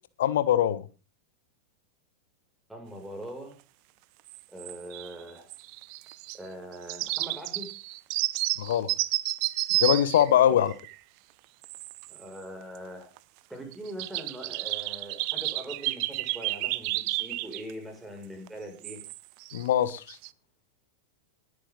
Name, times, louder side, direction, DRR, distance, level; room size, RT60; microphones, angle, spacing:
voice 1, 0.2-0.8 8.6-8.9 9.8-10.7 19.5-20.2, left 10 dB, 60° left, 16 dB, 1.3 m, -22 dB
voice 2, 2.7-3.6 4.5-5.5 6.3-7.7 10.5-10.7 12.1-13.1 13.5-19.0, right 1 dB, 5° right, 3 dB, 6.2 m, -42 dB
sound 1, 4.3-5.2 5.5-6.4 6.7-11.0 11.6-12.2 12.6-12.8 13.2-13.3 13.7-17.7 18.5-18.6 18.8-19.7 20.0-20.3, right 20 dB, 45° right, 0.8 m, -31 dB
20.5 x 10.5 x 3.9 m, 0.33 s
figure-of-eight pair, 90°, 0 cm